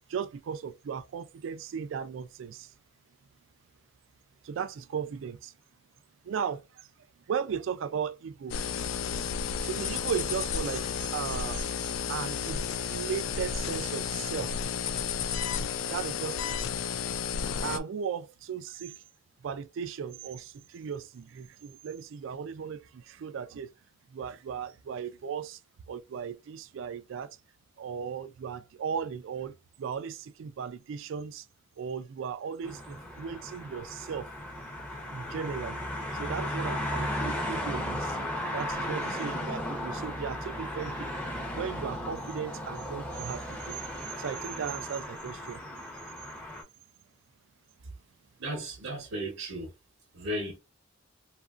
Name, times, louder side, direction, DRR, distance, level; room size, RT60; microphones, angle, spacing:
voice 1, 0.1-2.7 4.4-5.5 6.2-6.9 7.3-8.7 9.3-9.4 9.6-11.6 12.1-14.5 15.9-16.5 17.6-19.0 19.4-23.7 24.1-25.6 25.9-27.4 27.8-29.5 29.8-31.5 31.8-34.3 34.9-35.8 36.1-38.2 38.5-41.2 41.6-43.8 44.2-45.6, right 7 dB, 65° right, 0.3 m, -36 dB
sound 1, 8.5-17.8, left 7 dB, 75° left, 0.3 m, -32 dB
sound 2, 32.6-46.6, left 1 dB, 5° left, 0.6 m, -35 dB
voice 2, 48.4-49.7 50.1-50.6, right 1 dB, 80° right, 0.8 m, -35 dB
2.9 x 2.4 x 2.4 m
head